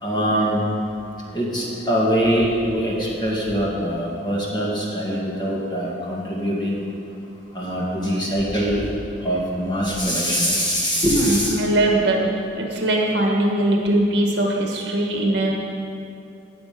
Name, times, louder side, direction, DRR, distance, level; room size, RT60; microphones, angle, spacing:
voice 1, 0.0-0.7 1.3-6.8 7.6-8.8 9.2-11.6, equal, 20° left, -4 dB, 2.1 m, -23 dB
voice 2, 11.1-12.3 12.6-15.5, right 1 dB, 60° right, 0 dB, 1.8 m, -21 dB
18.5 x 6.9 x 5.3 m, 2.8 s
head